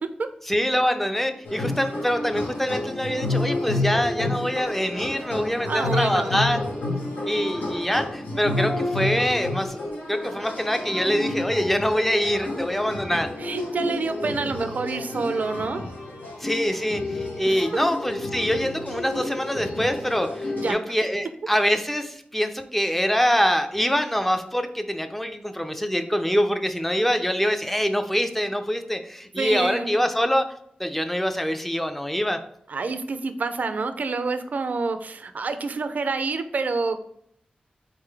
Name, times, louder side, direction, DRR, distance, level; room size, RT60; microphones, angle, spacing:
voice 1, 0.5-6.6 7.3-13.3 16.4-30.5 30.8-32.4, equal, 5° left, 7 dB, 0.4 m, -24 dB
sound 1, 1.4-20.7, left 2 dB, 85° left, 1.1 m, -30 dB
voice 2, 5.6-6.3 13.4-15.8 17.4-17.6 20.6-20.8 29.4-29.9 32.7-37.1, right 4 dB, 65° right, 9 dB, 0.4 m, -28 dB
4.0 x 3.7 x 3.3 m, 0.69 s
wide cardioid pair, 85°, 3 cm